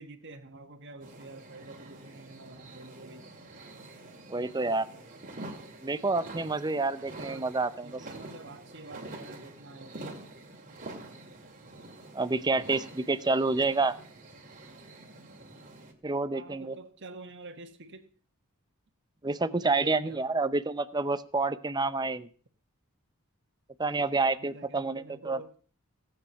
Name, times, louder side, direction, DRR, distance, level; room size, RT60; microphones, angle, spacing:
voice 1, 0.0-3.3 7.2-7.5 7.8-10.2 16.3-18.1 19.5-20.2 24.4-25.5, right 2 dB, 55° right, 7 dB, 1.6 m, -48 dB
sound 1, 1.0-15.9, right 2 dB, 35° right, 2.4 m, -46 dB
voice 2, 4.3-4.9 5.8-7.9 12.1-13.9 16.0-16.8 19.2-22.3 23.8-25.4, right 3 dB, 20° right, 13 dB, 0.6 m, -28 dB
17.0 x 8.8 x 5.7 m, 0.42 s
head